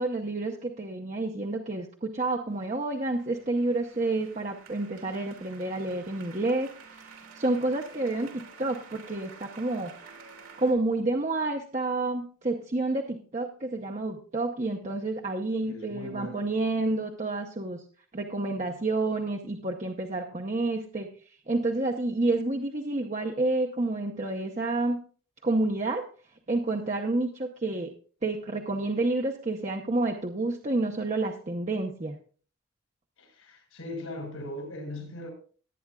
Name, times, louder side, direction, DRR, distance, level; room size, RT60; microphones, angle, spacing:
voice 1, 0.0-9.9 10.6-17.8 18.1-21.1 21.5-25.0 25.4-26.0 26.5-27.9 28.2-32.2, right 2 dB, 35° right, 0.8 m, -29 dB
sound 1, 2.6-10.7, right 5 dB, 85° right, 3.2 m, -50 dB
voice 2, 15.6-16.5 33.2-35.3, left 1 dB, 80° left, 6.3 m, -39 dB
18.5 x 9.3 x 2.3 m
head